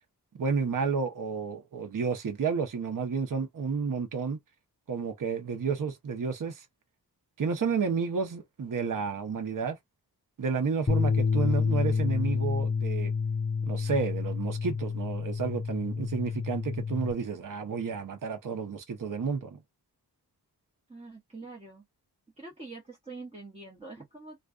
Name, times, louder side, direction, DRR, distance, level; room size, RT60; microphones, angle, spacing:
voice 1, 0.3-4.4 4.9-6.6 7.4-9.8 10.4-13.1 13.6-19.6, right 5 dB, 50° right, 0.7 m, -31 dB
sound 1, 10.9-17.1, left 5 dB, 20° left, 0.4 m, -29 dB
voice 2, 11.4-11.7 20.9-21.8 22.4-24.4, right 3 dB, 15° right, 1.0 m, -45 dB
2.4 x 2.2 x 2.4 m
wide cardioid pair, 65°, 41 cm